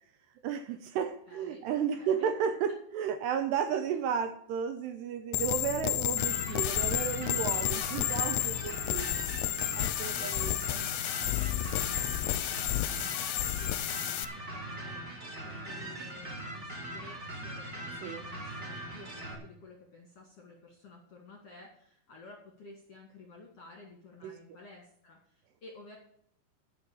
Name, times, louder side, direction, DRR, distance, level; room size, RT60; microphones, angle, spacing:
voice 1, 0.4-9.1 9.7-10.8 18.0-18.2 24.2-24.4, right 8 dB, 75° right, 9 dB, 2.7 m, -33 dB
voice 2, 1.0-2.5 3.7-3.8 10.0-26.0, left 3 dB, 50° left, 0 dB, 2.0 m, -53 dB
sound 1, 5.3-14.2, left 15 dB, 80° left, 2.7 m, -31 dB
sound 2, 6.2-19.3, right 1 dB, 35° right, 1.0 m, -41 dB
12.0 x 5.7 x 8.5 m, 0.68 s
omnidirectional pair, 5.3 m